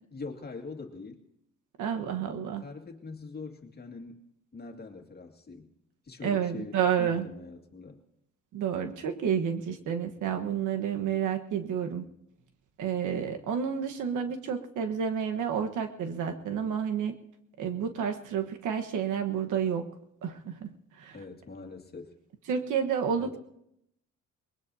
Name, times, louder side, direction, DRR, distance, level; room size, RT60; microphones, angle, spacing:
voice 1, 0.1-1.2 2.2-4.2 4.5-5.7 6.1-8.0 21.1-22.1 23.2-23.4, left 4 dB, 30° left, 3 dB, 2.2 m, -43 dB
voice 2, 1.8-2.6 6.2-7.3 8.5-12.0 12.8-17.2 17.6-19.9 20.2-21.2 22.5-23.4, right 7 dB, 80° right, 6 dB, 1.3 m, -30 dB
23.0 x 20.5 x 2.8 m, 0.80 s
cardioid pair, 90°, 30 cm